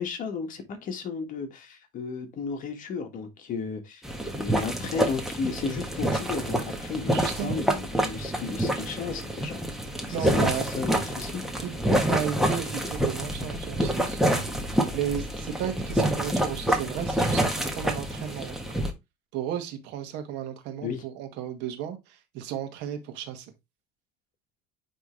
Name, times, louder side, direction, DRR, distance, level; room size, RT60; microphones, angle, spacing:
voice 1, 0.0-4.0 4.3-9.6 10.2-11.4 20.8-21.1, left 5 dB, 50° left, 1.7 m, -34 dB
sound 1, 4.0-18.9, right 1 dB, ahead, 1.3 m, -27 dB
voice 2, 7.1-7.6 10.1-10.7 11.6-11.8 12.0-14.5 14.9-18.8 19.3-23.5, right 9 dB, 85° right, 1.7 m, -34 dB
9.1 x 3.5 x 3.1 m
cardioid pair, 125°, 17 cm